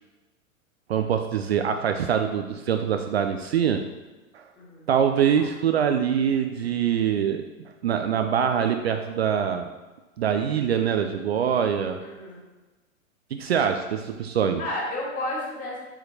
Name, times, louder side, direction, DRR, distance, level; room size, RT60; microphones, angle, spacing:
voice 1, 0.9-3.8 4.3-4.4 4.9-7.4 7.8-9.7 10.2-12.0 13.3-14.6, right 8 dB, 50° right, 6 dB, 0.5 m, -24 dB
voice 2, 4.6-4.9 12.0-12.4 14.6-15.8, left 1 dB, 20° left, -5 dB, 2.3 m, -32 dB
7.5 x 6.9 x 2.8 m, 1.2 s
figure-of-eight pair, 105°, 41 cm